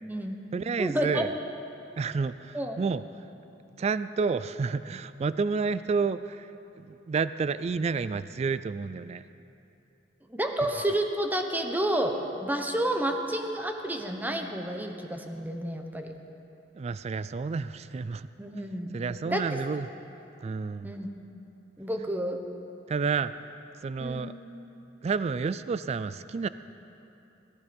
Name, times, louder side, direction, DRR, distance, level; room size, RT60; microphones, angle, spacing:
voice 1, 0.0-0.4 0.8-1.3 2.5-2.8 10.3-16.1 18.4-18.9 19.3-19.6 20.8-21.1 21.8-22.4 24.0-24.3, right 1 dB, 10° right, 4 dB, 1.0 m, -30 dB
voice 2, 0.5-1.3 2.0-3.0 3.8-6.5 6.8-9.2 16.8-18.3 18.9-19.9 20.4-20.9 22.9-23.3 23.8-24.3 25.0-26.5, right 5 dB, 35° right, 15 dB, 0.3 m, -30 dB
17.5 x 14.5 x 5.2 m, 2.8 s
head